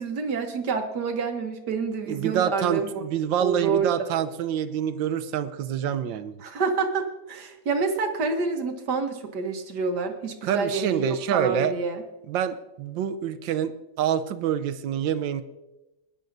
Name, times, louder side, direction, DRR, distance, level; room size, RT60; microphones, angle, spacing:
voice 1, 0.0-3.0 3.4-4.1 6.4-12.0, right 4 dB, 60° right, 5 dB, 1.6 m, -28 dB
voice 2, 2.1-6.4 10.4-11.7 12.3-13.7 14.0-15.4, right 9 dB, 80° right, 12 dB, 1.4 m, -26 dB
20.0 x 10.5 x 2.6 m, 0.99 s
omnidirectional pair, 2.1 m